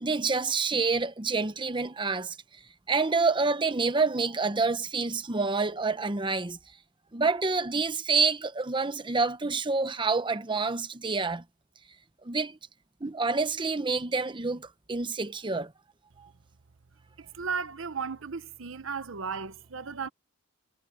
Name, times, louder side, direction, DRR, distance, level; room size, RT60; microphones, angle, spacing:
voice 1, 0.0-2.4 2.9-6.6 7.1-11.4 12.2-12.6 13.0-15.7 16.2-16.3, right 4 dB, 25° right, 0.8 m, -27 dB
voice 2, 17.2-20.1, right 5 dB, 65° right, 0.9 m, -35 dB
head